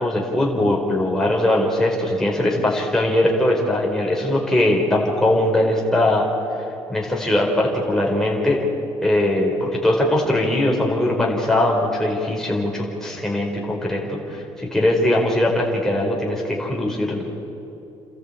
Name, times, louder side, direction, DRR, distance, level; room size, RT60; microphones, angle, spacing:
voice 1, 0.0-6.3 6.9-8.6 9.0-17.2, left 1 dB, 5° left, -2 dB, 4.6 m, -20 dB
29.0 x 13.5 x 8.7 m, 2.8 s
cardioid pair, 85°, 11 cm